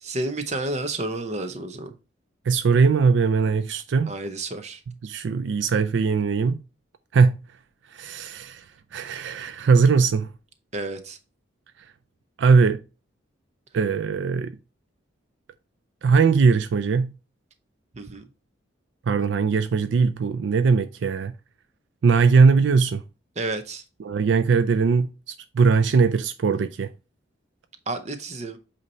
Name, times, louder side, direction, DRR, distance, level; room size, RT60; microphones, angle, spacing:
voice 1, 0.0-1.9 4.1-4.8 10.7-11.2 17.9-18.2 23.4-23.8 27.9-28.6, right 2 dB, 35° right, 0.7 m, -30 dB
voice 2, 2.5-4.1 5.0-6.6 7.1-7.4 7.9-8.6 8.9-10.3 12.4-12.8 13.7-14.5 16.0-17.1 19.1-21.3 22.0-23.0 24.0-25.1 25.5-26.9, right 5 dB, 65° right, 0.4 m, -20 dB
8.1 x 2.8 x 4.2 m
head